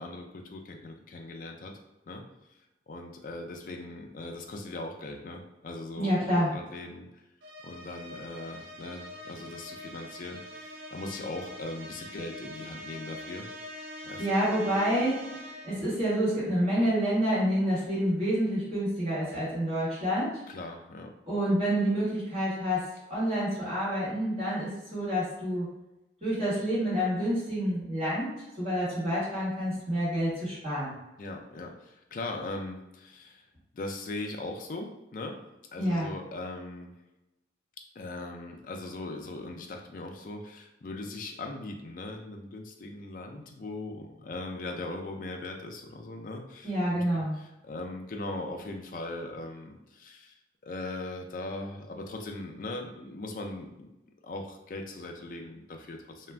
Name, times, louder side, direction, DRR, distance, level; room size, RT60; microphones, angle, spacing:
voice 1, 0.0-1.8 2.1-2.2 2.9-7.1 7.6-13.5 14.0-14.3 20.5-21.1 31.2-33.4 33.7-35.4 35.7-36.9 38.0-50.4 50.6-53.9 54.2-56.3, left 2 dB, 45° left, 3 dB, 0.4 m, -39 dB
voice 2, 6.0-6.5 14.2-15.2 15.6-20.4 21.3-22.8 23.1-25.7 26.2-28.3 28.6-30.9 35.8-36.1 46.6-47.4, equal, 35° right, -10 dB, 1.2 m, -28 dB
sound 1, 7.4-15.9, equal, 70° right, 0.4 m, -44 dB
2.4 x 2.2 x 3.2 m, 0.96 s
head